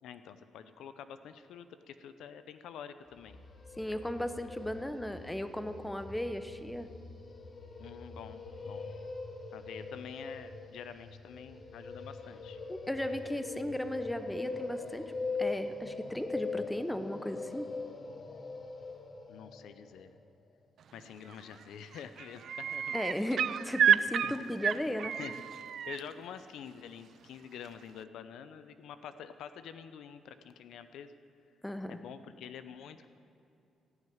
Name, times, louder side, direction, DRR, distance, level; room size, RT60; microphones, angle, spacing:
voice 1, 0.0-3.4 7.8-8.9 9.5-12.6 19.3-20.1 20.9-23.0 23.8-23.9 24.2-24.3 24.7-31.1 31.9-33.1, left 8 dB, 80° left, 11 dB, 0.6 m, -47 dB
sound 1, 3.1-20.1, left 3 dB, 40° left, 1.2 m, -42 dB
voice 2, 3.8-6.9 12.7-15.1 15.4-17.7 22.9-25.1 31.6-32.0, left 1 dB, 5° left, 9 dB, 0.8 m, -36 dB
sound 2, 21.3-21.6 21.9-26.0 27.6-27.7, right 9 dB, 60° right, 0.4 m, -30 dB
16.5 x 6.4 x 9.3 m, 2.6 s
cardioid pair, 90°, 0 cm